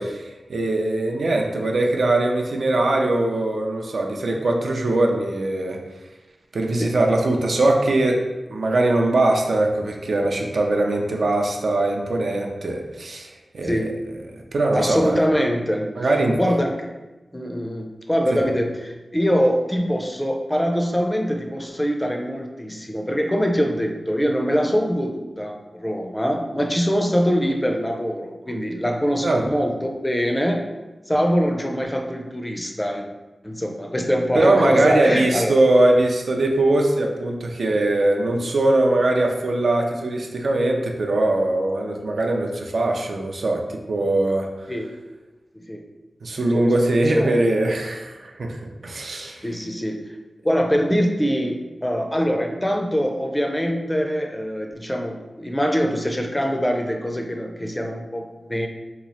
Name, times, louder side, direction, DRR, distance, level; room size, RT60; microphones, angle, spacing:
voice 1, 0.0-5.8 6.5-8.2 8.5-13.9 14.3-15.2 16.0-16.4 29.2-29.5 34.3-44.5 46.2-49.5, right 2 dB, 75° right, 1 dB, 0.4 m, -21 dB
voice 2, 13.6-14.0 14.7-15.9 16.4-16.9 17.3-30.6 31.1-33.1 33.4-35.6 44.7-44.9 45.5-45.8 46.5-46.7 47.1-47.5 49.4-50.1 50.4-58.7, equal, 15° left, 2 dB, 0.4 m, -23 dB
2.9 x 2.3 x 4.1 m, 1.1 s
wide cardioid pair, 85°, 0 cm